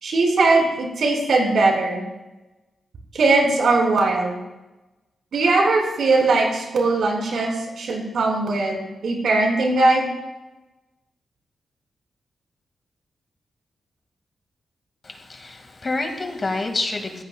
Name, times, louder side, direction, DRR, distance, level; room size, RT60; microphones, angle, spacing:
voice 1, 0.0-2.0 3.1-4.4 5.3-10.1, right 3 dB, 75° right, 0 dB, 4.5 m, -20 dB
voice 2, 15.0-17.2, left 2 dB, 35° left, 5 dB, 1.7 m, -28 dB
18.0 x 14.5 x 2.2 m, 1.0 s
wide cardioid pair, 130°, 0 cm